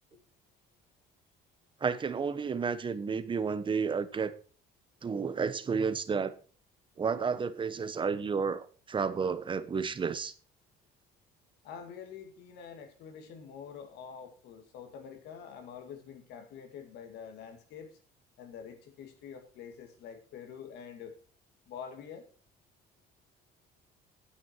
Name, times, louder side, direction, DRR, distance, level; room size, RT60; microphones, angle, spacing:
voice 1, 1.8-4.3 5.0-6.4 7.0-10.3, right 5 dB, 30° right, 1.0 m, -31 dB
voice 2, 11.6-18.0 18.4-21.2 21.7-22.3, left 7 dB, 80° left, 2.3 m, -46 dB
9.8 x 9.1 x 4.6 m
cardioid pair, 110°, 17 cm